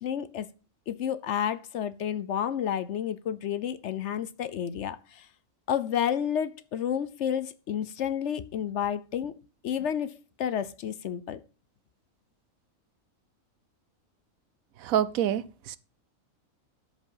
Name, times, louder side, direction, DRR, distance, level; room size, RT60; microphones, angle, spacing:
voice 1, 0.0-0.5 0.9-5.3 5.7-9.3 9.6-11.4, left 9 dB, 65° left, 0.9 m, -30 dB
voice 2, 14.8-15.8, right 10 dB, 80° right, 1.1 m, -27 dB
13.0 x 5.1 x 5.6 m
omnidirectional pair, 1.4 m